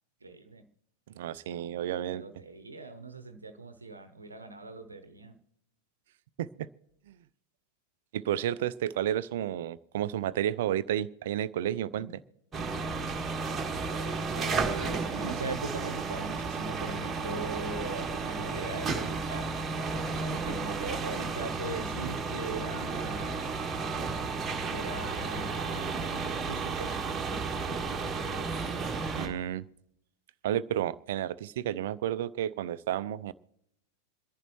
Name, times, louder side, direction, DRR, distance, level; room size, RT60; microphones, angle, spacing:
voice 1, 0.2-0.6 2.1-5.4 12.0-12.2 13.8-19.5 20.2-23.6 24.7-27.0, right 3 dB, 75° right, 10 dB, 0.8 m, -40 dB
voice 2, 1.1-2.2 6.4-6.7 7.1-7.2 8.1-12.1 29.2-29.7 30.4-33.3, right 11 dB, 55° right, 17 dB, 0.4 m, -31 dB
sound 1, 12.5-29.3, right 4 dB, 15° right, 1.6 m, -33 dB
27.0 x 11.0 x 3.1 m, 0.77 s
figure-of-eight pair, 90°, 0 cm